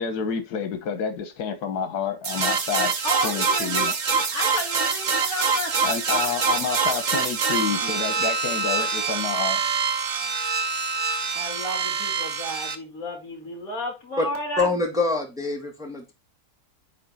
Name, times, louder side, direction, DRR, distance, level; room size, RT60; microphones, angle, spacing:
voice 1, 0.0-2.9 3.2-3.9 5.8-9.6, left 6 dB, 80° left, 1.5 m, -29 dB
sound 1, 2.2-12.8, right 5 dB, 40° right, 0.7 m, -25 dB
voice 2, 3.0-4.0 4.3-5.7 6.2-6.4 7.8-7.9 11.3-14.7, equal, 60° left, 2.5 m, -32 dB
voice 3, 14.6-16.1, left 3 dB, ahead, 1.6 m, -25 dB
9.1 x 3.7 x 4.0 m
omnidirectional pair, 1.7 m